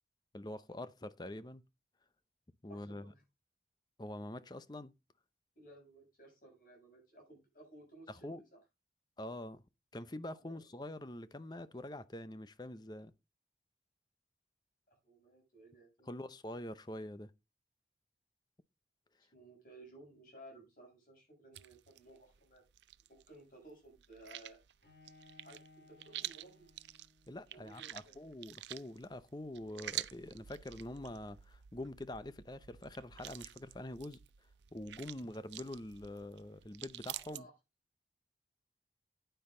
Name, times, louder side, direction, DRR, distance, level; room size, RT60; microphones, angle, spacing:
voice 1, 0.3-1.6 2.6-3.1 4.0-4.9 8.1-8.4 9.2-9.6 9.9-13.1 16.1-17.3 27.3-34.2 34.7-37.5, left 1 dB, 25° left, 0.7 m, -45 dB
voice 2, 2.7-3.2 5.6-8.6 10.4-10.5 14.9-16.2 19.3-22.6 23.1-24.6 25.4-26.7 27.5-28.2 37.3-37.5, right 1 dB, 50° left, 7.0 m, -57 dB
sound 1, 21.5-23.4 23.6-37.4, right 13 dB, 85° right, 0.5 m, -48 dB
Bowed string instrument, 24.8-27.8, left 2 dB, 70° left, 5.4 m, -62 dB
9.7 x 9.2 x 3.8 m
head